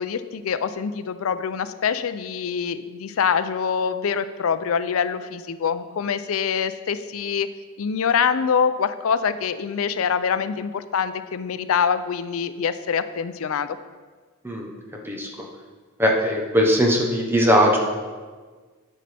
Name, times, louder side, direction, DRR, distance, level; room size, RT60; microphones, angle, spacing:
voice 1, 0.0-7.5 7.8-13.8, left 6 dB, 80° left, 12 dB, 0.4 m, -25 dB
voice 2, 16.0-17.8, equal, 10° right, 0 dB, 0.9 m, -19 dB
11.0 x 6.4 x 3.4 m, 1.4 s
head